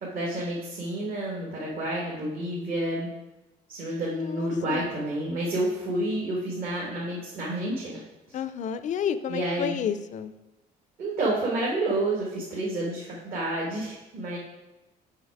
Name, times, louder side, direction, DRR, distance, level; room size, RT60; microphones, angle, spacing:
voice 1, 0.0-3.1 3.7-8.0 8.3-8.4 9.3-9.8 11.0-14.4, right 1 dB, 60° right, -4 dB, 1.7 m, -29 dB
voice 2, 4.1-4.9 8.3-10.3, left 8 dB, 45° left, 12 dB, 0.4 m, -31 dB
5.9 x 5.7 x 4.7 m, 1.0 s
cardioid pair, 110°, 17 cm